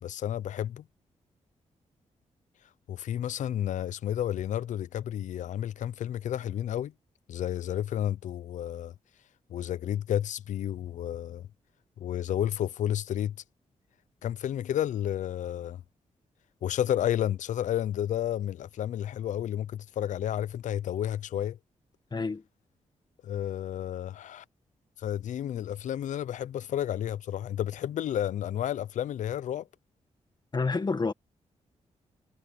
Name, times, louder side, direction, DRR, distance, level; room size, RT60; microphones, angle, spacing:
voice 1, 0.0-0.8 2.9-6.9 7.3-8.9 9.5-11.5 12.0-13.4 14.2-15.8 16.6-21.6 23.2-24.4 25.0-29.7, left 11 dB, 85° left, 0.6 m, -31 dB
voice 2, 22.1-22.4 30.5-31.1, left 4 dB, 35° left, 1.8 m, -28 dB
cardioid pair, 90°, 13 cm